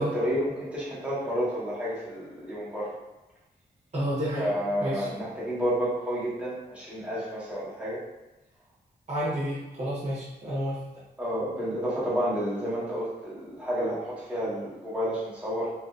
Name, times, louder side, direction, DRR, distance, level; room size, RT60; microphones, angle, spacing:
voice 1, 0.0-3.0 4.4-8.0 11.2-15.7, equal, 5° right, -9 dB, 1.1 m, -30 dB
voice 2, 3.9-4.5 4.8-5.1 9.1-10.8, equal, 40° right, -9 dB, 1.0 m, -30 dB
2.9 x 2.6 x 2.4 m, 1.0 s
wide cardioid pair, 120°, 17 cm